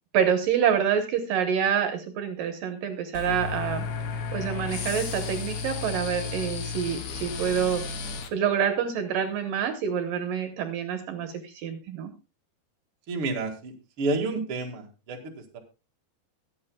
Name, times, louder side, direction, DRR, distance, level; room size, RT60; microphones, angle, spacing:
voice 1, 0.1-3.9 4.3-7.8 8.3-12.1, right 8 dB, 70° right, 7 dB, 2.7 m, -27 dB
sound 1, 3.1-8.3, left 5 dB, 85° left, 1.2 m, -33 dB
voice 2, 13.1-15.6, right 3 dB, 45° right, 2 dB, 2.2 m, -30 dB
22.5 x 8.4 x 2.3 m, 0.29 s
omnidirectional pair, 4.5 m